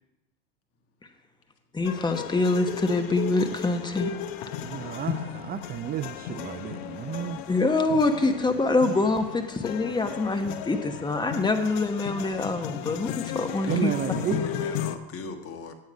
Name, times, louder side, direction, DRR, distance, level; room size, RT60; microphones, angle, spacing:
voice 1, 1.7-4.2 7.5-13.9, left 2 dB, 15° left, 6 dB, 1.2 m, -25 dB
sound 1, 1.8-15.0, left 10 dB, 75° left, 0.8 m, -35 dB
voice 2, 4.6-7.4 13.7-14.4, right 11 dB, 30° right, 12 dB, 0.4 m, -32 dB
voice 3, 13.5-15.7, left 5 dB, 45° left, 5 dB, 1.6 m, -38 dB
9.5 x 9.2 x 5.1 m, 0.97 s
supercardioid pair, 95°, 31 cm